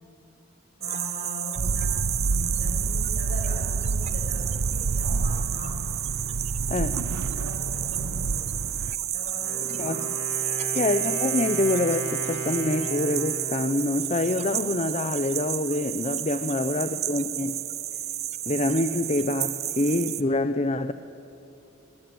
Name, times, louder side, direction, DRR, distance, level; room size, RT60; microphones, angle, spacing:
voice 1, 0.8-5.8 7.0-7.1 7.3-8.5 9.1-10.1 10.4-10.9 16.5-16.9, left 2 dB, 45° left, 0 dB, 6.8 m, -42 dB
sound 1, 0.8-20.2, right 11 dB, 30° right, 0.6 m, -31 dB
sound 2, 1.6-9.0, right 3 dB, 85° right, 0.6 m, -29 dB
voice 2, 6.7-7.0 9.7-10.1 10.7-17.6 18.5-20.9, left 2 dB, 30° left, 11 dB, 0.7 m, -26 dB
Wind instrument woodwind instrument, 9.3-15.1, equal, 70° left, 3.3 m, -36 dB
25.0 x 20.5 x 9.4 m, 2.9 s
head